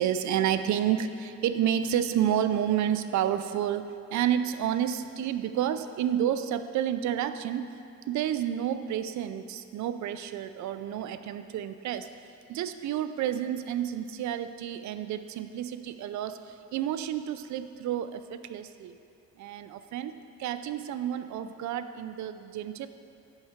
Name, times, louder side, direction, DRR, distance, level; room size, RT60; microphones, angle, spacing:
voice 1, 0.0-7.7 8.1-12.1 12.5-19.0 19.4-20.1 20.4-22.9, right 10 dB, 70° right, 11 dB, 0.5 m, -30 dB
7.1 x 5.6 x 5.0 m, 2.5 s
cardioid pair, 90°, 30 cm